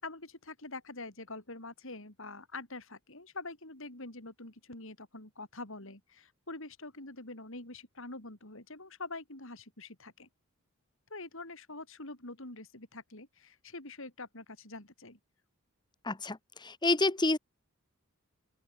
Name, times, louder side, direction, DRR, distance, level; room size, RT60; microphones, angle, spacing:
voice 1, 0.0-10.3 11.1-15.2, left 2 dB, 60° left, 5.0 m, -45 dB
voice 2, 16.0-17.4, left 2 dB, 20° left, 1.1 m, -29 dB
open air
head